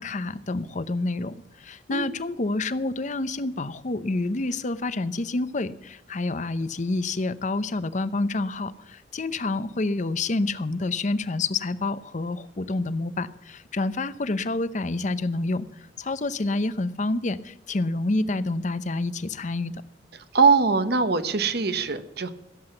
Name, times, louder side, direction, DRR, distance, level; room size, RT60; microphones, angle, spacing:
voice 1, 0.0-19.7, left 2 dB, 45° left, 14 dB, 0.7 m, -28 dB
voice 2, 20.3-22.3, right 5 dB, 65° right, 11 dB, 1.1 m, -21 dB
15.5 x 7.9 x 7.7 m, 0.86 s
head